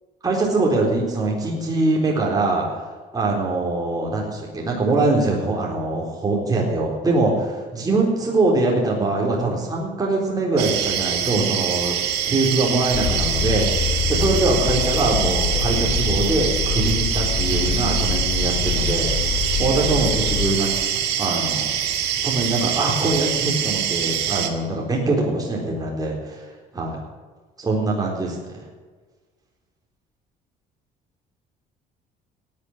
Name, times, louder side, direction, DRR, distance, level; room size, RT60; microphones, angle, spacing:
voice 1, 0.2-2.8 3.1-12.0 12.2-20.8 21.2-21.7 22.2-27.0 27.6-28.4, right 2 dB, 20° right, -2 dB, 3.9 m, -23 dB
sound 1, 10.6-24.5, right 9 dB, 80° right, 1.9 m, -24 dB
sound 2, 12.9-20.5, left 6 dB, 35° left, 2.8 m, -25 dB
13.5 x 9.5 x 9.8 m, 1.4 s
cardioid pair, 110°, 17 cm